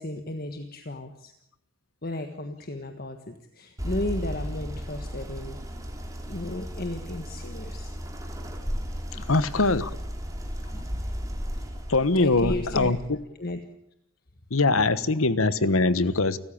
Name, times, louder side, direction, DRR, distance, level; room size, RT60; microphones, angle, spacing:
voice 1, 0.0-1.3 2.0-5.6 6.3-7.9 9.1-9.3 10.7-11.0 12.1-12.9 13.4-13.6 14.8-14.9, left 1 dB, 45° left, 7 dB, 1.5 m, -34 dB
sound 1, 3.8-13.1, equal, 15° right, 3.5 m, -35 dB
voice 2, 9.3-9.8 11.9-13.0 14.5-16.4, left 3 dB, 70° left, 15 dB, 1.2 m, -22 dB
29.5 x 14.5 x 8.8 m, 0.78 s
head